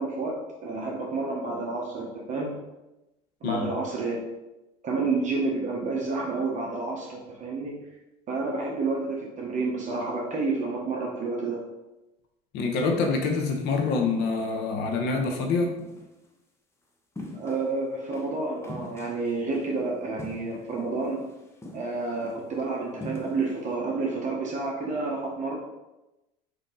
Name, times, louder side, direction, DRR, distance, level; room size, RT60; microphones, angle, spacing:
voice 1, 0.0-2.5 3.4-4.2 4.8-7.8 8.3-11.6 17.3-21.3 21.7-25.6, right 3 dB, 40° right, -2 dB, 0.9 m, -30 dB
voice 2, 12.5-15.8, left 4 dB, 65° left, 3 dB, 0.8 m, -26 dB
sound 1, 15.8-16.1 17.2-17.7 18.1-18.3 18.6-19.7 20.2-20.9 21.2-21.3 21.6-22.3 23.0-23.6, left 2 dB, 15° left, 0.6 m, -41 dB
3.9 x 2.7 x 3.8 m, 0.98 s
supercardioid pair, 95°, 19 cm